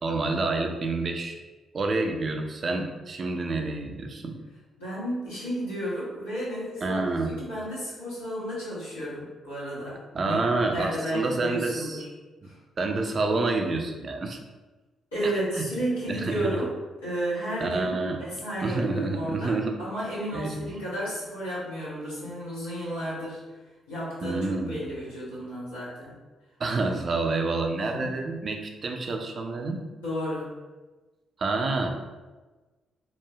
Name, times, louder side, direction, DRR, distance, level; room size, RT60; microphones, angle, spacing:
voice 1, 0.0-1.4 1.7-4.4 6.8-7.3 10.1-12.0 12.8-14.4 15.2-15.6 16.1-16.6 17.6-18.3 18.6-19.8 20.3-20.7 24.2-24.9 26.6-29.8 31.4-31.9, right 3 dB, 45° right, 3 dB, 0.4 m, -28 dB
voice 2, 4.8-10.0 10.2-10.4 10.7-12.1 12.4-12.6 15.1-16.7 17.0-23.4 23.9-26.1 27.8-28.1 30.0-30.5, equal, 85° left, -13 dB, 1.2 m, -33 dB
3.1 x 2.2 x 2.3 m, 1.2 s
figure-of-eight pair, 40°, 0 cm